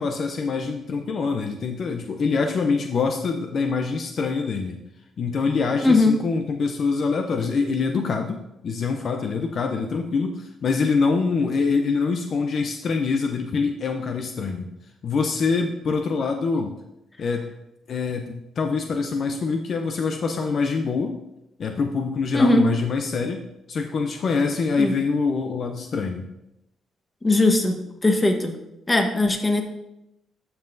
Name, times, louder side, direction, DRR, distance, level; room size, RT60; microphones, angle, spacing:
voice 1, 0.0-4.8 5.2-14.7 15.0-16.8 17.2-17.5 17.9-21.2 21.6-23.4 23.7-26.3, left 4 dB, 55° left, 4 dB, 0.6 m, -25 dB
voice 2, 5.8-6.2 22.3-22.7 24.8-24.9 27.2-27.8 28.0-28.5 28.9-29.6, left 2 dB, 20° left, 4 dB, 1.2 m, -19 dB
12.5 x 5.5 x 2.6 m, 0.88 s
cardioid pair, 90°, 0 cm